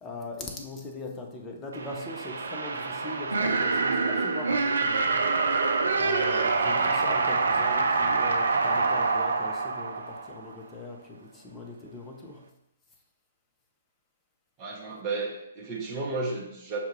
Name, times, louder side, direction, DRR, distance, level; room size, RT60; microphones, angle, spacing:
voice 1, 0.0-5.3 5.9-12.4, left 2 dB, 15° left, 1 dB, 0.6 m, -40 dB
sound 1, 1.7-10.6, right 4 dB, 65° right, 0.4 m, -26 dB
voice 2, 14.6-16.8, right 3 dB, 25° right, -3 dB, 0.8 m, -33 dB
5.7 x 2.3 x 3.1 m, 0.84 s
figure-of-eight pair, 125°, 0 cm